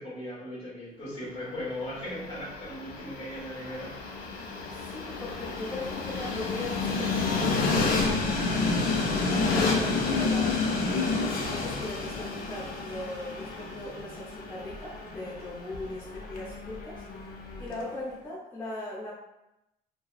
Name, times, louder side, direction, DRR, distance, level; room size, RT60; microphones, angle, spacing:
voice 1, 0.0-3.9, left 1 dB, 35° left, -7 dB, 1.5 m, -38 dB
Train, 1.8-17.9, left 3 dB, 60° left, 0.5 m, -30 dB
voice 2, 4.7-8.3 9.4-11.1 11.4-17.0 17.6-19.1, left 2 dB, 10° left, -9 dB, 0.6 m, -39 dB
2.7 x 2.0 x 2.4 m, 0.88 s
cardioid pair, 110°, 17 cm